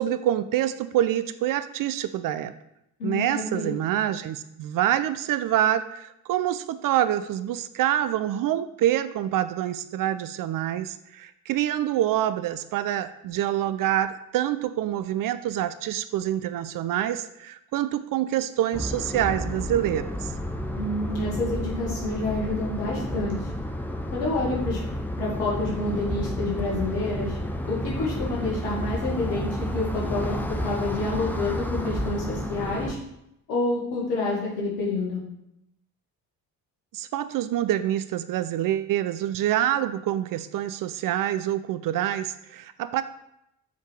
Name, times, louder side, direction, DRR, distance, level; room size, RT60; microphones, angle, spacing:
voice 1, 0.0-2.5 3.0-20.3 36.9-43.0, right 12 dB, 45° right, 12 dB, 0.5 m, -26 dB
voice 2, 3.0-3.7 20.8-23.4 24.1-24.8 25.2-27.4 27.7-33.0 33.5-35.2, left 2 dB, 75° left, -3 dB, 2.3 m, -28 dB
sound 1, 18.7-33.0, left 1 dB, 5° left, 0.8 m, -31 dB
7.1 x 4.5 x 4.6 m, 0.82 s
figure-of-eight pair, 45°, 48 cm